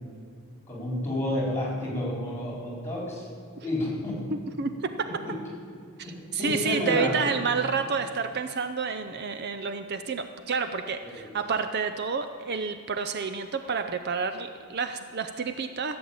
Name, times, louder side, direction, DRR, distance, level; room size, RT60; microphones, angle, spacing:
voice 1, 0.7-3.3 3.6-4.2 5.2-5.3 6.0-7.4 11.0-11.3, left 1 dB, 10° left, -3 dB, 4.3 m, -30 dB
voice 2, 4.3-5.1 6.0-16.0, right 5 dB, 50° right, 9 dB, 0.5 m, -29 dB
15.0 x 7.8 x 8.7 m, 2.4 s
head